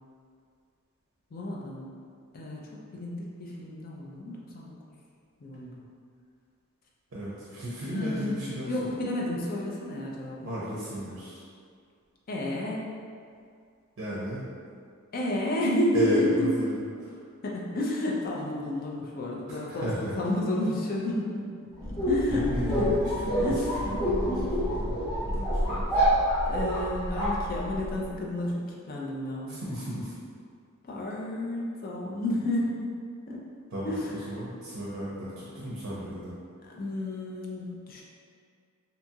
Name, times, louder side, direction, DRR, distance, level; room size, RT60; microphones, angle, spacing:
voice 1, 1.3-1.9 2.3-2.6 2.9-4.7 5.4-5.9 7.9-8.4 8.7-10.5 12.3-12.8 15.1-16.5 17.4-22.9 23.3-24.0 24.3-24.5 25.7-25.8 26.5-29.6 30.8-32.9 33.3-33.4 33.8-34.2 36.6-38.0, left 1 dB, 45° left, -3 dB, 0.4 m, -31 dB
voice 2, 7.1-8.9 10.4-11.4 14.0-14.4 15.9-17.1 19.5-20.1 22.3-23.5 23.8-25.8 29.5-30.1 33.7-36.3, equal, 60° right, -8 dB, 0.5 m, -34 dB
sound 1, 21.8-28.0, equal, 30° left, 0.9 m, -27 dB
2.8 x 2.3 x 2.7 m, 2.2 s
head